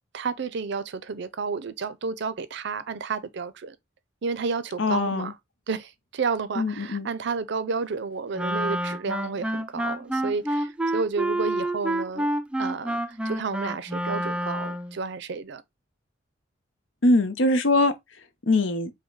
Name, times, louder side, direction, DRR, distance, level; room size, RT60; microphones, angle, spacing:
voice 1, 0.1-3.8 4.2-5.3 5.7-12.3 12.6-15.6, right 4 dB, 65° right, 0.5 m, -31 dB
voice 2, 4.8-5.3 6.6-7.1 17.0-17.9 18.5-18.9, left 2 dB, 75° left, 0.8 m, -22 dB
Wind instrument woodwind instrument, 8.3-15.0, right 1 dB, 5° right, 0.3 m, -28 dB
5.0 x 2.1 x 3.9 m
head